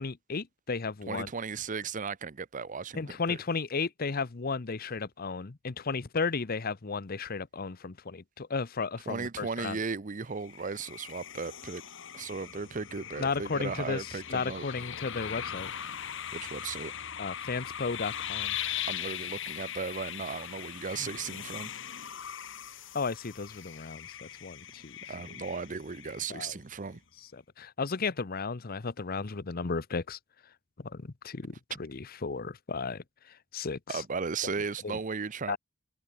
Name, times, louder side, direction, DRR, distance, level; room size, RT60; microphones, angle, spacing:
voice 1, 0.0-1.3 2.9-9.8 13.2-15.7 17.2-18.6 21.0-21.1 22.9-24.9 26.3-26.6 27.3-30.2 30.8-34.0 34.4-34.5 34.8-35.0 35.5-35.6, left 4 dB, 45° left, 0.8 m, -34 dB
voice 2, 1.1-3.4 9.1-11.8 12.1-14.7 16.3-16.9 18.8-21.7 25.1-27.0 33.9-35.6, right 5 dB, 40° right, 0.7 m, -36 dB
sound 1, 10.4-26.6, left 10 dB, 65° left, 1.5 m, -40 dB
head